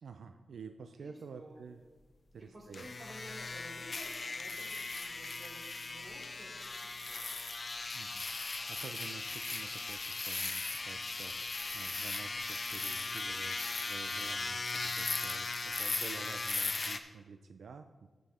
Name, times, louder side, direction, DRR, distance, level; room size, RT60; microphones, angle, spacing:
voice 1, 0.0-1.8 2.3-2.9 7.9-8.2 8.7-11.5 11.7-18.1, right 5 dB, 85° right, 7 dB, 0.4 m, -50 dB
voice 2, 2.5-7.2, equal, 30° right, -3 dB, 3.6 m, -53 dB
sound 1, 2.7-17.0, left 3 dB, 40° left, 0.6 m, -38 dB
14.0 x 5.4 x 4.3 m, 1.3 s
wide cardioid pair, 125°, 0 cm